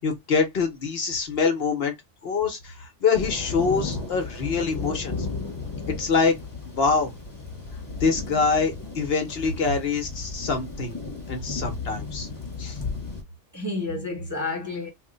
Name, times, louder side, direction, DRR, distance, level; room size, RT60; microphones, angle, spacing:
voice 1, 0.0-1.9 2.2-5.2 6.0-6.4 6.7-7.1 8.0-11.0 11.3-12.3 12.6-12.8, left 5 dB, 60° left, 1.0 m, -25 dB
sound 1, 3.1-13.2, left 4 dB, 20° left, 0.8 m, -34 dB
voice 2, 5.4-5.8 9.7-9.8 11.4-11.5 13.5-14.9, left 2 dB, 15° right, 0.8 m, -31 dB
3.0 x 2.1 x 3.8 m
omnidirectional pair, 1.2 m